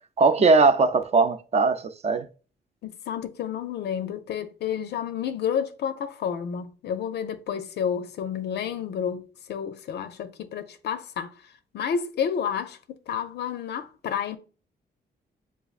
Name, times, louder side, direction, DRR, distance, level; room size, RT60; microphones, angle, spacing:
voice 1, 0.2-2.3, right 4 dB, 35° right, 0.4 m, -20 dB
voice 2, 2.8-11.3 11.7-12.8 13.1-14.4, left 8 dB, 70° left, 0.4 m, -30 dB
6.7 x 2.4 x 2.4 m
cardioid pair, 130°, 18 cm